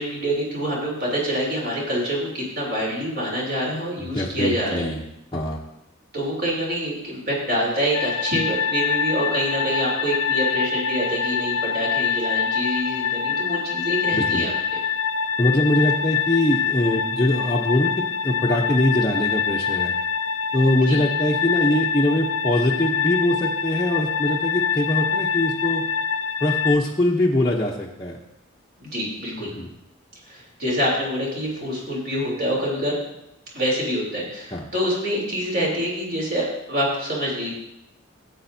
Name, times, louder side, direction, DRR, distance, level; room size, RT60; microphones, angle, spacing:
voice 1, 0.0-4.9 6.1-14.8 20.9-21.0 28.8-29.5 30.3-33.0 33.5-37.5, equal, 50° right, -4 dB, 3.3 m, -26 dB
voice 2, 4.0-5.0 5.3-5.6 14.1-14.5 15.4-19.9 20.5-25.8 26.4-28.2 29.4-29.7 34.5-34.7, left 1 dB, 20° left, -4 dB, 0.7 m, -22 dB
sound 1, 7.9-26.8, left 6 dB, 75° left, 0.5 m, -25 dB
16.0 x 8.0 x 2.7 m, 0.85 s
head